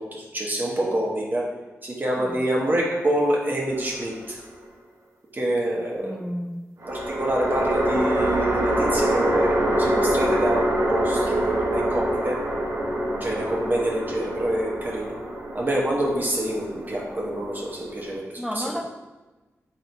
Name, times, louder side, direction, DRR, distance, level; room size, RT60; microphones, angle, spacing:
voice 1, 0.0-1.4 1.8-4.4 5.3-6.2 6.9-12.3 13.2-15.1 15.5-18.6, right 1 dB, 35° right, -3 dB, 1.1 m, -26 dB
sound 1, 3.7-4.6 6.8-18.2, right 1 dB, 65° right, 0.8 m, -25 dB
voice 2, 6.0-6.6 18.4-18.9, equal, ahead, 4 dB, 0.5 m, -31 dB
3.8 x 3.0 x 4.3 m, 1.2 s
cardioid pair, 55°, 5 cm